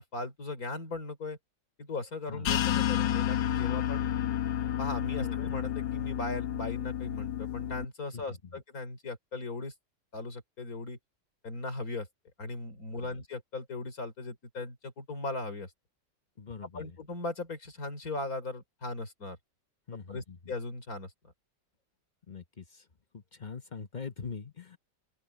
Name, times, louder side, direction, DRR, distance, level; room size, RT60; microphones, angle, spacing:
voice 1, 0.0-1.4 1.8-4.0 4.8-9.7 10.1-11.0 11.4-12.1 12.4-15.7 16.7-19.4 20.1-21.1, left 2 dB, 50° left, 4.1 m, -38 dB
voice 2, 2.3-2.6 5.1-5.6 8.1-8.6 13.0-13.2 16.4-17.0 19.9-20.5 22.3-22.9 23.1-24.8, left 5 dB, 35° left, 0.9 m, -43 dB
sound 1, 2.4-7.8, left 11 dB, 80° left, 1.7 m, -30 dB
open air
omnidirectional pair, 1.9 m